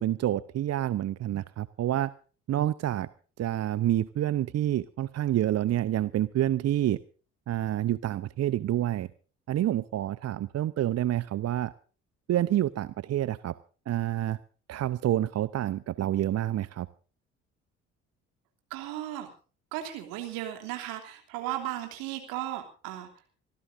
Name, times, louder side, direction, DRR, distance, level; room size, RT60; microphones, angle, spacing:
voice 1, 0.0-2.1 2.5-3.1 3.4-7.0 7.5-9.1 9.5-11.7 12.3-13.5 13.9-14.4 14.7-16.9, right 12 dB, 45° right, 16 dB, 0.8 m, -28 dB
voice 2, 18.7-19.3 19.7-23.1, right 13 dB, 70° right, 5 dB, 3.0 m, -35 dB
26.0 x 15.0 x 2.6 m, 0.38 s
hypercardioid pair, 50°, 36 cm